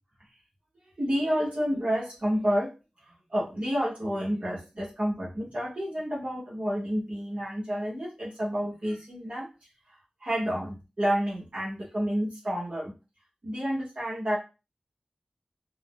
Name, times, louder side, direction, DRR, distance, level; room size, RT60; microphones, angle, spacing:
voice 1, 1.0-2.7 3.3-9.5 10.2-12.9 13.4-14.4, equal, 60° right, -5 dB, 1.0 m, -29 dB
3.4 x 2.1 x 2.4 m, 0.29 s
wide cardioid pair, 65°, 2 cm